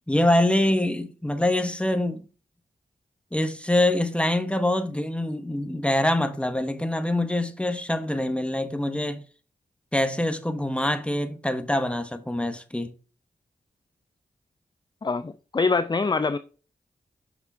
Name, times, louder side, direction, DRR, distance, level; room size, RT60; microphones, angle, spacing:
voice 1, 0.1-2.2 3.3-9.2 9.9-12.9, left 1 dB, 5° left, 1.0 m, -25 dB
voice 2, 15.0-16.4, left 4 dB, 25° left, 0.4 m, -24 dB
6.1 x 5.5 x 3.5 m
cardioid pair, 50°, 18 cm